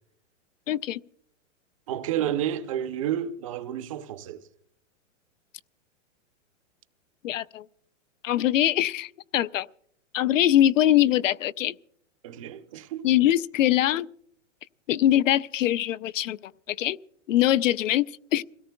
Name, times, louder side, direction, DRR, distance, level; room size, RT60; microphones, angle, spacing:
voice 1, 0.7-1.0 7.2-7.6 8.2-9.7 10.1-11.7 13.0-14.1 14.9-16.4 16.7-17.0 17.3-18.4, left 12 dB, 90° left, 0.6 m, -22 dB
voice 2, 1.9-4.5 12.2-13.1, right 10 dB, 30° right, 0.5 m, -30 dB
28.5 x 17.5 x 2.2 m
hypercardioid pair, 165°, 37 cm